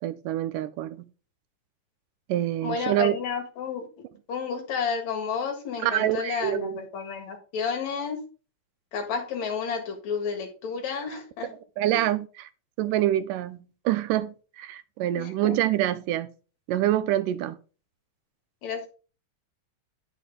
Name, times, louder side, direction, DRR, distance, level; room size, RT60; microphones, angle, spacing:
voice 1, 0.0-1.1 2.3-3.2 5.8-6.8 11.8-12.5 12.8-16.3 16.7-17.6, right 13 dB, 90° right, 2.2 m, -26 dB
voice 2, 2.6-3.9 4.3-8.2 8.9-11.5 11.9-12.0 15.2-15.6 18.6-18.9, left 6 dB, 60° left, 3.0 m, -31 dB
9.1 x 6.0 x 3.9 m
omnidirectional pair, 3.8 m